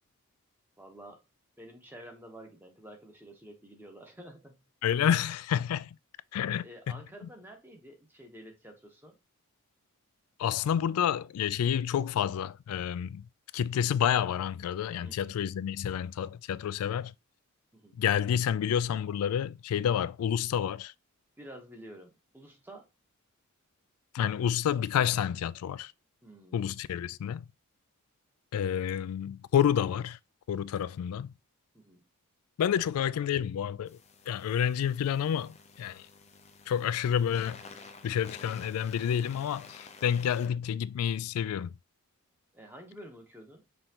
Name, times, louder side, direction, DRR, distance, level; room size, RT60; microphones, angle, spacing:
voice 1, 0.8-1.2 1.6-4.6 6.6-9.2 15.0-15.4 17.7-18.0 21.4-22.9 26.2-26.7 31.7-32.0 42.5-43.6, right 1 dB, 10° right, 1.0 m, -50 dB
voice 2, 4.8-5.9 6.3-6.7 10.4-13.3 13.5-17.1 18.0-20.9 24.1-25.9 26.5-27.4 28.5-30.2 30.5-31.3 32.6-34.0 34.3-36.1 36.7-37.6 38.0-41.7, left 9 dB, 85° left, 0.3 m, -29 dB
sound 1, 33.9-40.5, left 4 dB, 30° left, 0.5 m, -51 dB
5.5 x 3.2 x 2.9 m
head